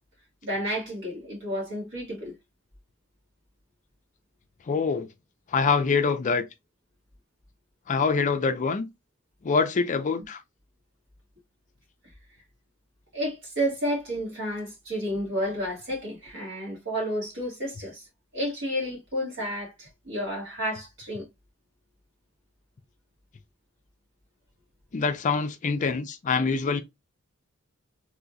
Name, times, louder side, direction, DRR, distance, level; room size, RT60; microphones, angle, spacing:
voice 1, 0.4-2.3 13.1-18.0 18.3-21.3, equal, 60° right, 1.8 m, -31 dB
voice 2, 4.7-5.1 5.5-6.4 7.9-8.9 9.4-10.4 24.9-26.8, left 5 dB, 35° left, 0.4 m, -25 dB
3.3 x 2.9 x 2.5 m
head